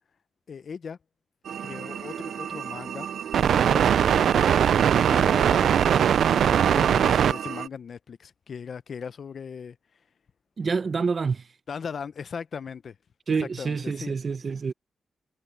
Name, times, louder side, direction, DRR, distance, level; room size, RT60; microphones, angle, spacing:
voice 1, 0.5-1.0 1.6-3.1 3.4-4.7 5.1-9.8 11.7-13.0 13.4-14.1, left 6 dB, 55° left, 0.6 m, -38 dB
sound 1, 1.5-7.7, right 9 dB, 85° right, 0.3 m, -22 dB
voice 2, 10.6-11.5 13.3-14.7, right 5 dB, 45° right, 0.8 m, -27 dB
wide cardioid pair, 135°, 0 cm